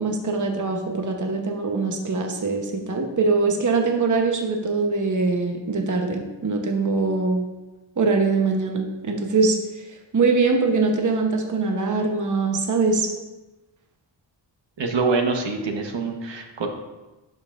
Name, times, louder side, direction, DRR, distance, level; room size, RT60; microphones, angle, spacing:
voice 1, 0.0-7.4 8.0-9.6 10.1-13.1, right 4 dB, 40° right, 3 dB, 1.0 m, -22 dB
voice 2, 14.8-16.7, right 4 dB, 65° right, 3 dB, 1.2 m, -25 dB
11.0 x 5.4 x 2.5 m, 1.1 s
cardioid pair, 75°, 46 cm